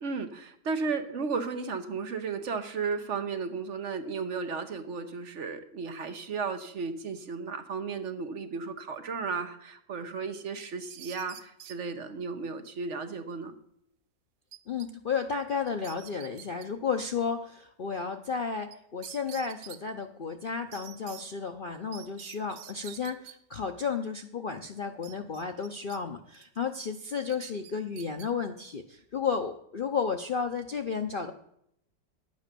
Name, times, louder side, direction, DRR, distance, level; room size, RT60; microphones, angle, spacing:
voice 1, 0.0-13.6, right 5 dB, 50° right, 7 dB, 1.2 m, -34 dB
sound 1, 10.6-11.8 14.5-14.9 15.2-15.3 15.7-16.7 18.7-18.8 19.0-19.8 20.7-21.2 21.9-23.3 25.0-26.0 26.3-26.6 27.3-28.3, right 11 dB, 70° right, 1.2 m, -47 dB
voice 2, 14.7-31.3, left 5 dB, 65° left, 6 dB, 0.5 m, -33 dB
10.0 x 8.3 x 6.7 m, 0.73 s
omnidirectional pair, 1.8 m